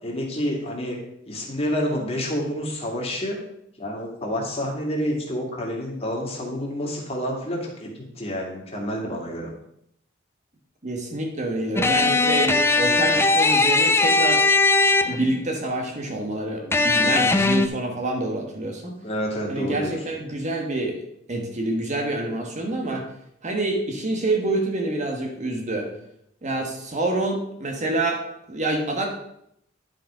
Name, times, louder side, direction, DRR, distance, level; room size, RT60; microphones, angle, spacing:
voice 1, 0.0-1.0 1.3-3.4 3.8-7.9 8.2-9.5 17.0-17.3 19.0-20.0, equal, 30° left, -1 dB, 2.2 m, -28 dB
voice 2, 10.8-14.5 15.1-19.0 19.5-21.0 21.3-23.0 23.4-25.9 26.4-28.2 28.5-29.1, right 2 dB, 40° right, 2 dB, 1.4 m, -27 dB
sound 1, 11.8-15.4 16.7-17.7, left 3 dB, 15° left, 0.5 m, -19 dB
10.5 x 5.3 x 5.0 m, 0.75 s
head